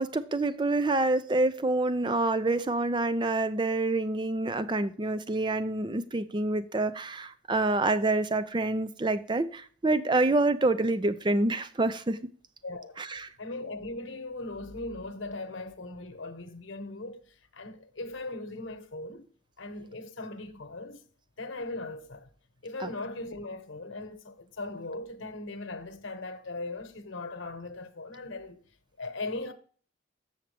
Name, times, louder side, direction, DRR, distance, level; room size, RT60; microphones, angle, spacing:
voice 1, 0.0-12.2 13.0-13.3 22.8-22.9, right 2 dB, 25° right, 0.5 m, -27 dB
voice 2, 12.6-19.3 19.6-21.1 21.4-22.3 22.6-28.6 29.0-29.5, left 2 dB, 90° left, 1.1 m, -39 dB
7.2 x 7.1 x 3.4 m
head